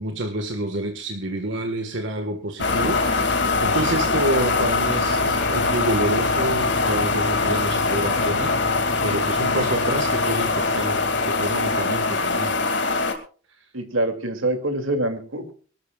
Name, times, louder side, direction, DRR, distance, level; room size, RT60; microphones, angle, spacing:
voice 1, 0.0-12.6 13.5-13.7, right 1 dB, 65° right, 4 dB, 1.6 m, -28 dB
sound 1, 2.6-13.1, left 3 dB, 60° left, 2.5 m, -22 dB
voice 2, 13.7-15.5, right 1 dB, 85° right, 7 dB, 2.7 m, -25 dB
24.0 x 13.0 x 2.4 m, 0.40 s
head